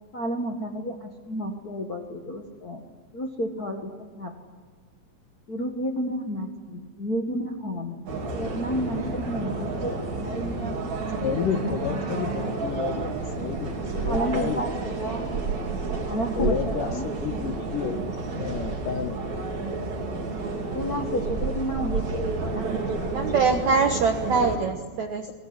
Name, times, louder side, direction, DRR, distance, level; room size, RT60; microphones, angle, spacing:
voice 1, 0.1-2.8 3.1-3.9 4.1-4.4 5.5-8.0 8.3-10.8 11.1-12.1 14.0-15.3 16.1-17.1 20.7-23.4, equal, 80° left, 1 dB, 0.8 m, -31 dB
sound 1, 8.1-24.6, right 3 dB, 40° right, 3.9 m, -30 dB
voice 2, 11.2-14.6 16.4-18.0 18.3-19.2, left 7 dB, 65° left, 6 dB, 2.4 m, -30 dB
voice 3, 23.1-25.3, right 5 dB, 70° right, 4 dB, 1.7 m, -23 dB
23.5 x 20.0 x 9.8 m, 1.4 s
omnidirectional pair, 5.2 m